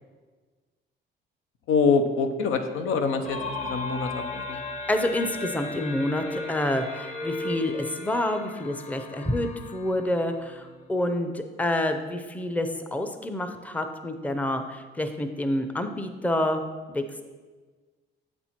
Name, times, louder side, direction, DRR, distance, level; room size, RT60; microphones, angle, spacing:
voice 1, 1.7-4.6, left 5 dB, 85° left, 7 dB, 0.6 m, -25 dB
sound 1, 3.3-10.9, left 3 dB, 35° left, 0.9 m, -36 dB
voice 2, 4.9-16.6 16.9-17.2, left 1 dB, 5° left, 7 dB, 0.5 m, -28 dB
7.7 x 4.3 x 4.4 m, 1.4 s
cardioid pair, 90°, 20 cm